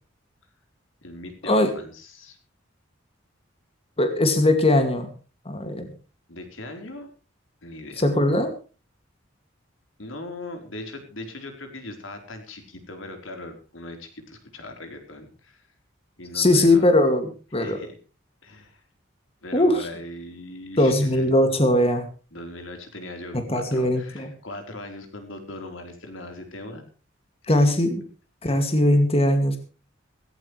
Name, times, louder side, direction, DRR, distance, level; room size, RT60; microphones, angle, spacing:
voice 1, 1.0-2.4 6.3-7.1 7.6-8.0 10.0-15.6 16.2-16.9 17.6-17.9 18.4-18.8 19.4-21.2 22.3-26.8 27.5-27.7 28.4-28.6, left 1 dB, 80° left, 5 dB, 4.2 m, -39 dB
voice 2, 4.0-5.1 5.4-5.9 8.0-8.5 16.3-17.8 19.5-19.9 20.8-22.1 23.3-24.3 27.5-28.0 28.4-29.6, left 1 dB, 30° left, 6 dB, 2.3 m, -20 dB
17.5 x 16.5 x 3.3 m, 0.35 s
head